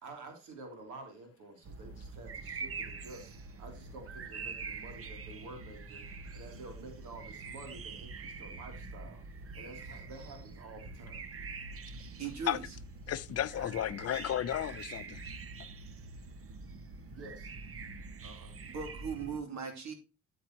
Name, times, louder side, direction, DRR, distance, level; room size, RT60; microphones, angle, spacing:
voice 1, 0.0-6.0 6.3-9.2 9.5-11.2 17.1-17.5 18.2-18.5, right 2 dB, 80° right, 3.0 m, -50 dB
sound 1, 1.6-19.4, right 4 dB, 50° right, 1.1 m, -45 dB
voice 2, 12.2-12.8 18.7-19.9, right 6 dB, 65° right, 3.0 m, -39 dB
voice 3, 13.1-15.2, left 11 dB, 55° left, 0.7 m, -33 dB
9.4 x 8.6 x 2.9 m
cardioid pair, 90°, 30 cm